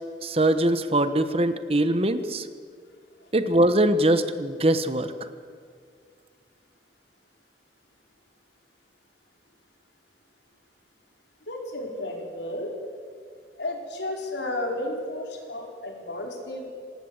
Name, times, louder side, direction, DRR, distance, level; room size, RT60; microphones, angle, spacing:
voice 1, 0.2-2.5 3.3-5.1, right 1 dB, 35° right, 10 dB, 1.2 m, -22 dB
voice 2, 11.5-12.7 13.6-16.7, left 1 dB, 90° left, 1 dB, 4.8 m, -32 dB
26.5 x 18.0 x 8.1 m, 2.1 s
head